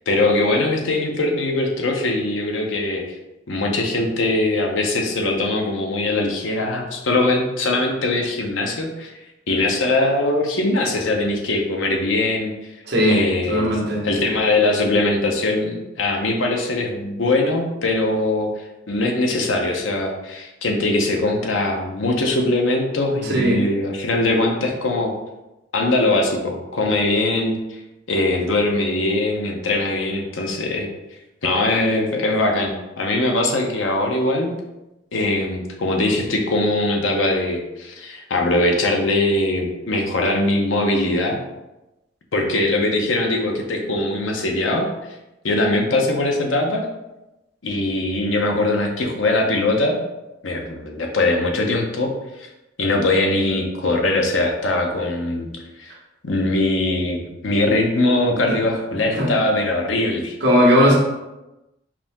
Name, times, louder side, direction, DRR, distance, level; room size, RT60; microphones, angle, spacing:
voice 1, 0.1-3.0 3.5-9.1 9.5-12.5 13.0-18.5 18.9-25.1 25.7-27.8 28.1-30.9 31.4-34.5 35.1-41.4 42.3-44.9 45.4-46.9 47.6-50.0 50.4-52.1 52.4-52.5 52.8-55.5 55.8-55.9 56.2-60.4, left 2 dB, 90° left, 2 dB, 0.8 m, -21 dB
voice 2, 12.9-13.2 13.5-14.0 23.3-23.6 59.2-59.3 60.4-60.9, equal, 60° right, -3 dB, 1.3 m, -16 dB
4.9 x 2.9 x 3.5 m, 0.98 s
head